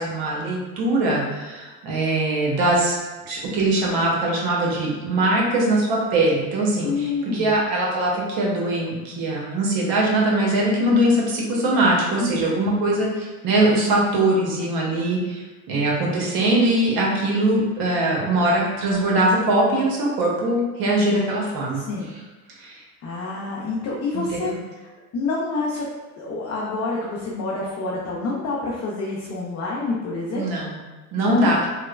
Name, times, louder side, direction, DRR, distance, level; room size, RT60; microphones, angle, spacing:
voice 1, 0.0-3.0 3.3-15.4 15.7-21.8 22.6-22.8 24.1-24.6 30.4-30.8 31.1-31.6, right 1 dB, 60° right, -3 dB, 0.9 m, -21 dB
voice 2, 6.8-7.6 12.2-12.6 21.7-22.1 23.0-25.9 26.2-30.5 31.2-31.5, left 3 dB, 40° left, -4 dB, 0.5 m, -28 dB
3.0 x 2.0 x 2.3 m, 1.2 s
hypercardioid pair, 85°, 40 cm